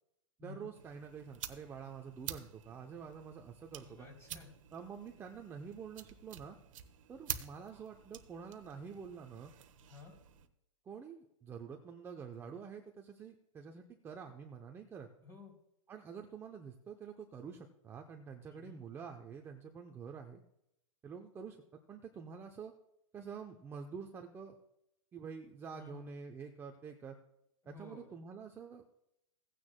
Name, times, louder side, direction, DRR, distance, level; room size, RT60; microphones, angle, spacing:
voice 1, 0.4-4.1 4.7-6.6 7.1-9.5 10.9-15.1 15.9-20.4 21.0-21.6 21.9-22.7 23.1-24.5 25.1-27.2 27.7-28.8, right 6 dB, 15° right, 3 dB, 0.6 m, -47 dB
sound 1, 0.7-10.5, right 10 dB, 75° right, 1.0 m, -49 dB
voice 2, 3.8-4.5 9.8-10.1 15.2-15.5 18.5-18.8 25.7-26.1 27.6-28.1, left 4 dB, 15° left, 1 dB, 3.2 m, -52 dB
16.5 x 9.5 x 2.2 m, 0.81 s
hypercardioid pair, 145°, 17 cm